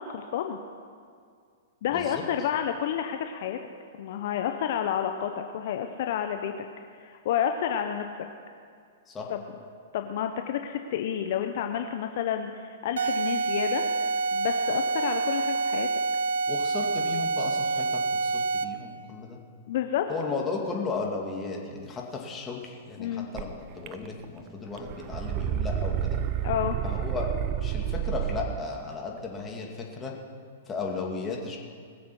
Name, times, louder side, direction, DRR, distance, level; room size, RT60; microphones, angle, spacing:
voice 1, 0.1-0.6 1.8-3.6 3.9-6.5 7.0-8.0 9.3-9.4 9.9-13.8 14.3-15.9 19.7-20.1 23.0-23.3 26.4-26.8, left 9 dB, 55° left, 6 dB, 0.7 m, -30 dB
voice 2, 1.9-2.2 9.1-9.3 16.5-19.4 20.1-26.2 26.8-27.3 27.6-30.1 30.7-31.6, left 4 dB, 20° left, -1 dB, 2.4 m, -35 dB
sound 1, 13.0-18.9, right 3 dB, 75° right, 0.4 m, -27 dB
sound 2, 23.4-23.5 23.9-24.4 24.7-28.7, right 10 dB, 40° right, 0.8 m, -30 dB
20.5 x 7.3 x 6.2 m, 2.2 s
hypercardioid pair, 110°, 0 cm